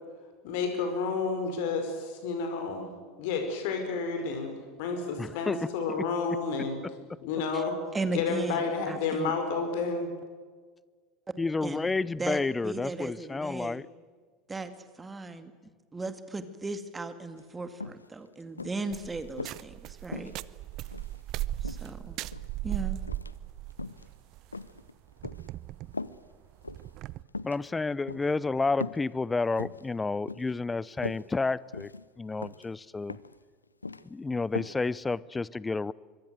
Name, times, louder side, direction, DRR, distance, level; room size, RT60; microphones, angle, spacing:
voice 1, 0.4-2.9 3.2-4.5 4.8-6.8 7.2-7.8 8.1-10.1, left 4 dB, 55° left, 5 dB, 5.2 m, -30 dB
voice 2, 5.2-5.6 5.9-6.0 11.4-13.9 27.4-31.9 32.2-33.2 34.0-35.9, left 3 dB, 15° left, 22 dB, 0.7 m, -30 dB
voice 3, 7.9-9.3 11.6-11.9 12.1-13.8 14.5-14.7 15.0-15.5 15.9-20.3 21.6-22.2 22.6-23.0, right 3 dB, 15° right, 10 dB, 2.2 m, -36 dB
sound 1, 17.4-17.5 17.8-18.1 18.6-19.6 20.1-21.2 21.6-22.6 23.0-23.4 23.7-24.1 24.5-25.5 25.9-26.2 26.6-26.9 27.3-27.6 28.1-28.3 28.8-29.1 29.4-29.8 30.3-30.6 30.8-31.2 31.7-32.1 32.4-32.7 33.1-33.4 33.6-34.0 34.6-34.8 35.1-35.2, left 3 dB, 85° left, 0.7 m, -39 dB
sound 2, 18.9-27.2, right 15 dB, 45° right, 0.7 m, -38 dB
25.5 x 23.5 x 7.9 m, 1.5 s
figure-of-eight pair, 75°, 0 cm